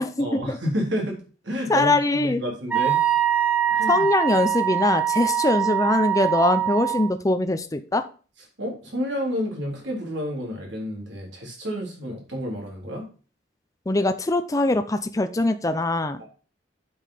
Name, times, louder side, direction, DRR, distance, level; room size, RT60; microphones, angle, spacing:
voice 1, 0.0-3.0 3.7-4.1 8.6-13.0 16.2-16.3, equal, 70° right, 0 dB, 3.8 m, -30 dB
voice 2, 1.7-2.4 3.9-8.0 13.9-16.2, left 2 dB, 20° left, 9 dB, 0.5 m, -22 dB
Wind instrument woodwind instrument, 2.7-7.1, right 11 dB, 5° right, 1.5 m, -23 dB
8.4 x 5.5 x 5.8 m, 0.37 s
head